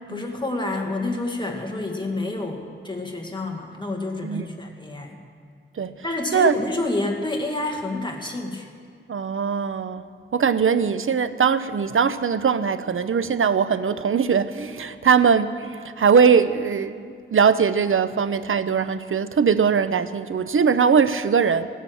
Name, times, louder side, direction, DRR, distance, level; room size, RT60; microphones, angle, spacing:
voice 1, 0.1-5.2 6.0-8.7, left 2 dB, 20° left, 2 dB, 1.9 m, -28 dB
voice 2, 9.1-10.1 10.3-21.7, right 6 dB, 80° right, 13 dB, 0.6 m, -21 dB
17.0 x 10.0 x 7.7 m, 2.1 s
wide cardioid pair, 90°, 21 cm